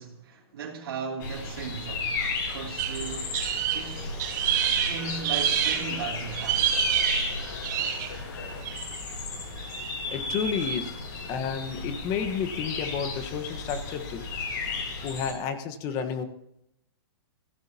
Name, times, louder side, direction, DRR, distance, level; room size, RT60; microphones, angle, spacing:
voice 1, 0.0-2.2 2.5-3.4 3.7-4.2 4.9-6.7, right 6 dB, 70° right, 3.1 m, -37 dB
sound 1, 1.2-15.3, left 3 dB, 50° left, 7.2 m, -34 dB
sound 2, 2.5-8.6, left 4 dB, 85° left, 6.8 m, -45 dB
sound 3, 2.8-6.0 6.3-8.2 8.6-8.9 9.7-9.9, right 9 dB, 45° right, 2.6 m, -27 dB
voice 2, 10.1-11.0 11.3-14.3 15.0-16.2, left 7 dB, 30° left, 1.5 m, -31 dB
23.5 x 16.0 x 3.0 m
hypercardioid pair, 155°, 13 cm